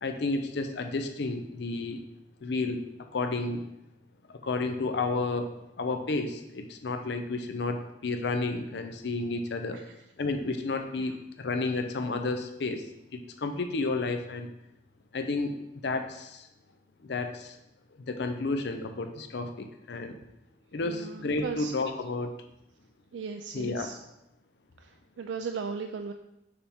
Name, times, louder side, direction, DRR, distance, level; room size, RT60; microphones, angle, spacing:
voice 1, 0.0-2.0 2.4-2.8 3.1-3.6 4.4-9.8 10.2-12.8 13.1-14.5 15.1-15.6 15.8-16.5 17.0-17.6 18.1-20.2 20.7-22.3 23.5-23.9, left 3 dB, 70° left, 7 dB, 0.6 m, -31 dB
voice 2, 20.8-21.7 23.1-23.9 24.8-24.9 25.2-26.1, right 5 dB, 85° right, 5 dB, 0.4 m, -37 dB
6.6 x 5.6 x 3.5 m, 0.87 s
head